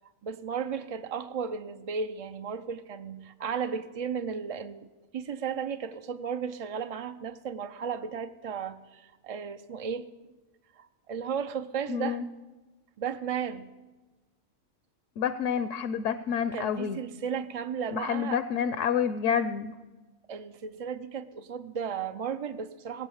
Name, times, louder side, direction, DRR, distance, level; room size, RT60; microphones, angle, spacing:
voice 1, 0.2-10.1 10.7-12.2 13.0-13.7 16.5-18.4 20.3-23.1, right 6 dB, 65° right, 9 dB, 0.3 m, -34 dB
voice 2, 11.9-12.2 15.2-17.0 17.9-19.7, left 7 dB, 70° left, 12 dB, 0.9 m, -28 dB
17.0 x 8.3 x 7.2 m, 1.2 s
omnidirectional pair, 1.4 m